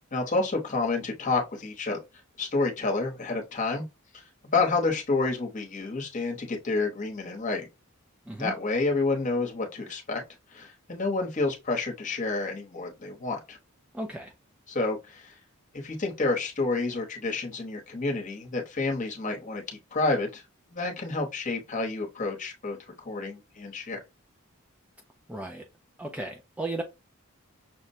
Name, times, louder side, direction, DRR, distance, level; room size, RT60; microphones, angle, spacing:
voice 1, 0.1-2.0 2.4-3.8 4.1-7.6 8.4-10.2 10.5-13.6 14.7-15.3 15.7-20.4 20.7-24.0, left 3 dB, 35° left, 0.9 m, -29 dB
voice 2, 13.9-14.3 25.3-25.6 26.0-26.8, right 2 dB, 5° right, 0.3 m, -35 dB
5.8 x 2.2 x 2.7 m
head